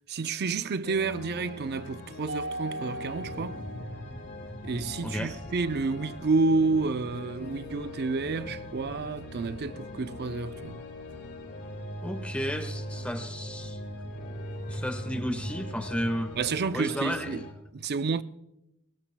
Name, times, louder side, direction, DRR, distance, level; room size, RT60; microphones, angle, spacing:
voice 1, 0.1-3.6 4.6-10.8 16.4-17.4 17.7-18.2, right 4 dB, 50° right, 0.5 m, -29 dB
sound 1, 0.8-17.5, equal, 55° left, 4.4 m, -41 dB
Mallet percussion, 2.3-4.7, right 1 dB, 75° right, 5.1 m, -39 dB
sound 2, 3.1-16.6, equal, 30° left, 3.4 m, -47 dB
voice 2, 5.0-5.3 12.0-13.8 14.7-16.3 16.7-17.3, equal, 5° left, 1.3 m, -33 dB
22.0 x 21.0 x 2.3 m
head